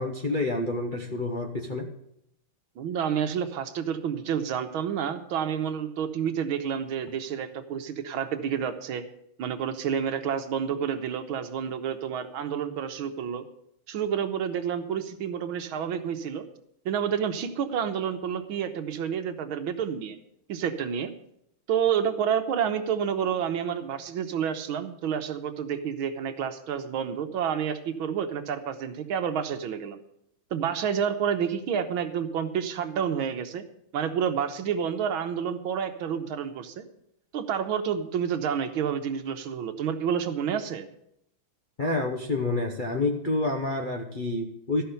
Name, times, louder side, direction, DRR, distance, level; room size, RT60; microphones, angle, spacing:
voice 1, 0.0-1.9 41.8-44.8, left 2 dB, 45° left, 2 dB, 0.6 m, -28 dB
voice 2, 2.8-9.0 9.4-13.4 13.9-16.5 16.9-20.2 20.5-21.1 21.7-30.0 30.5-33.6 33.9-36.9 37.3-40.9, right 8 dB, 80° right, 8 dB, 1.7 m, -29 dB
13.5 x 5.8 x 8.0 m, 0.76 s
omnidirectional pair, 2.3 m